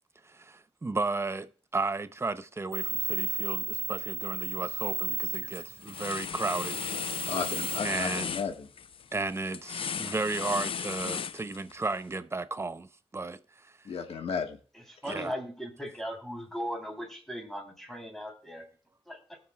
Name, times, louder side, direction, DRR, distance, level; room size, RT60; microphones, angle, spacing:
voice 1, 0.2-6.8 7.8-8.3 9.1-13.4 15.0-15.3, right 3 dB, 25° right, 0.6 m, -34 dB
sound 1, 2.7-7.8, right 4 dB, 60° right, 1.0 m, -34 dB
sound 2, 4.7-5.0 5.3-11.9, left 7 dB, 65° left, 0.5 m, -36 dB
voice 2, 7.3-8.7 13.8-14.6, left 5 dB, 85° left, 1.4 m, -34 dB
voice 3, 14.7-18.6 19.1-19.4, equal, 5° left, 3.3 m, -38 dB
20.5 x 7.0 x 2.3 m
wide cardioid pair, 85°, 10 cm